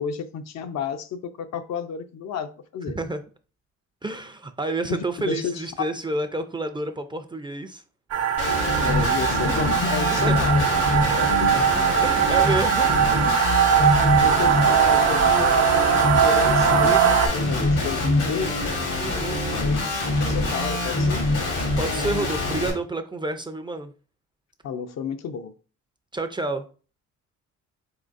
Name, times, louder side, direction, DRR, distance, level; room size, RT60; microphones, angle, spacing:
voice 1, 0.0-3.0 4.9-5.6 8.8-11.6 14.2-18.6 19.5-21.3 24.6-25.5, left 6 dB, 60° left, 0.5 m, -31 dB
voice 2, 4.0-7.8 10.1-10.5 11.5-12.9 19.0-19.4 21.8-23.9 26.1-26.6, right 2 dB, 15° right, 0.4 m, -29 dB
sound 1, 8.1-17.3, right 8 dB, 55° right, 0.8 m, -20 dB
Guitar, 8.4-22.7, left 2 dB, 85° left, 1.6 m, -25 dB
3.9 x 3.7 x 2.5 m
cardioid pair, 90°, 30 cm